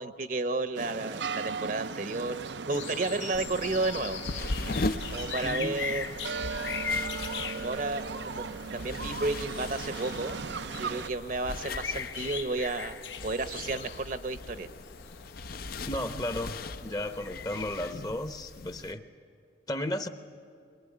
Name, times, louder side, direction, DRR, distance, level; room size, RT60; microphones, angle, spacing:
voice 1, 0.0-2.4 2.7-4.2 5.1-6.0 7.5-10.4 10.8-13.0 13.2-14.7, right 2 dB, 45° right, 11 dB, 0.9 m, -32 dB
sound 1, 0.7-11.1, right 5 dB, 70° right, 0.5 m, -38 dB
sound 2, 2.7-17.9, left 6 dB, 80° left, 1.1 m, -40 dB
sound 3, 3.3-18.9, left 2 dB, 50° left, 0.6 m, -39 dB
voice 2, 5.4-5.8 15.9-19.0 19.7-20.1, left 1 dB, 20° left, 9 dB, 0.9 m, -34 dB
22.5 x 21.0 x 9.9 m, 2.5 s
head